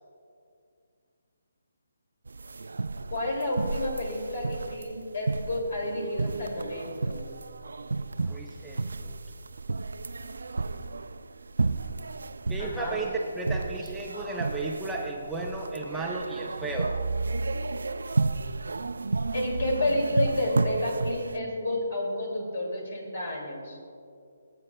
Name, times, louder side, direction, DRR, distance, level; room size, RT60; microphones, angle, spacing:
sound 1, 2.3-21.4, right 3 dB, 85° right, 0.3 m, -32 dB
voice 1, 3.1-7.3 12.6-13.0 19.3-23.8, left 1 dB, 55° left, 0 dB, 2.4 m, -30 dB
voice 2, 8.2-9.2 12.5-16.9, right 2 dB, 5° right, -2 dB, 0.5 m, -34 dB
20.0 x 8.6 x 2.2 m, 2.4 s
hypercardioid pair, 165°, 0 cm